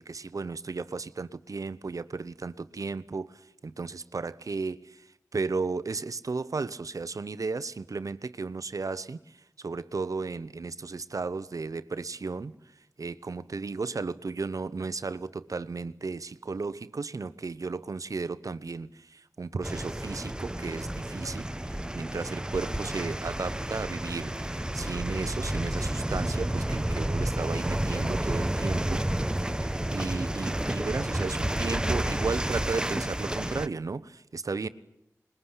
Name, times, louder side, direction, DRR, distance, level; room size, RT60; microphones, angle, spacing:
voice 1, 0.0-5.1 5.3-12.5 13.0-21.5 21.9-29.0 29.9-34.7, right 4 dB, 70° right, 14 dB, 0.9 m, -34 dB
sound 1, 19.6-33.7, right 1 dB, 15° right, 0.9 m, -30 dB
21.5 x 21.0 x 9.8 m, 0.80 s
cardioid pair, 45°, 6 cm